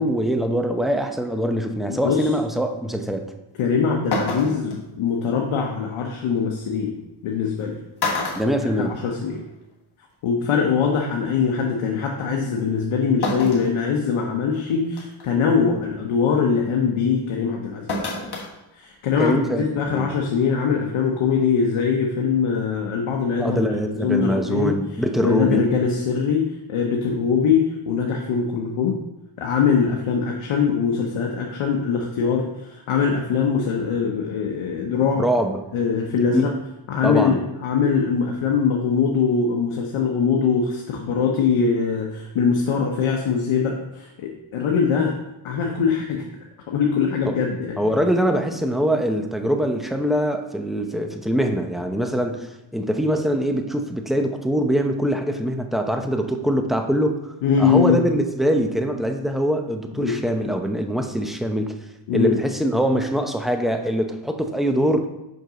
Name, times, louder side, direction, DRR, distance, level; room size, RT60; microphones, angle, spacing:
voice 1, 0.0-3.2 8.4-8.9 19.2-20.1 23.4-25.7 35.2-35.6 36.3-36.5 37.0-37.4 47.3-47.4 47.8-57.1 57.6-61.7 62.1-65.1, equal, ahead, 5 dB, 0.6 m, -23 dB
voice 2, 1.9-2.3 3.6-6.9 7.2-7.8 8.8-9.4 10.2-18.0 18.7-24.8 25.2-29.0 29.4-35.3 35.7-36.5 36.9-45.1 45.4-46.2 46.7-47.8 57.4-58.0 60.0-60.2 62.1-62.4, left 6 dB, 90° left, 0 dB, 0.9 m, -22 dB
sound 1, 3.6-3.7 4.1-4.8 6.4-6.5 7.4-7.6 8.0-9.4 9.7-9.8 11.0-11.1 13.2-13.7 14.3-14.4 15.0-15.3 17.9-18.5 18.8-18.9, left 3 dB, 55° left, 1.5 m, -27 dB
5.8 x 5.4 x 3.8 m, 0.93 s
cardioid pair, 80°, 48 cm